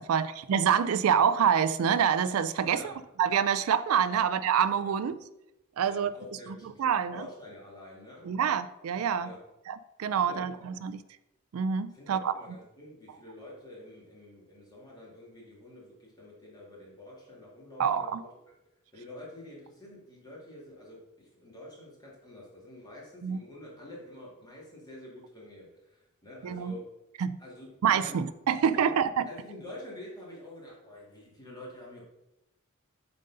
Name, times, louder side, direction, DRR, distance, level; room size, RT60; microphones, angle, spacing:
voice 1, 0.0-2.9 3.2-5.2 5.8-6.1 6.8-7.3 8.2-9.3 9.7-11.0 11.5-12.3 17.8-18.2 23.2-23.4 26.4-26.7 27.2-27.4 27.8-29.2, right 7 dB, 75° right, 13 dB, 0.4 m, -26 dB
voice 2, 2.6-3.0 4.1-4.2 4.8-5.0 5.8-8.3 9.2-9.4 10.2-10.6 11.9-18.3 18.7-26.9 27.4-28.2 28.5-28.9 29.3-32.0, left 1 dB, 20° left, -4 dB, 2.3 m, -48 dB
7.4 x 4.0 x 5.3 m, 0.91 s
head